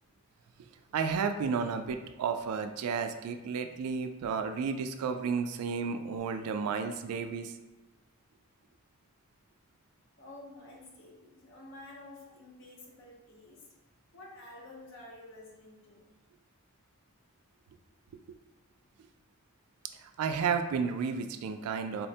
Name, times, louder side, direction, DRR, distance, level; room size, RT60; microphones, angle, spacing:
voice 1, 0.9-7.5 20.0-22.1, right 6 dB, 90° right, 9 dB, 0.3 m, -32 dB
voice 2, 10.2-13.7 14.1-16.1, left 2 dB, 55° left, -2 dB, 0.7 m, -50 dB
4.0 x 2.1 x 2.7 m, 1.1 s
head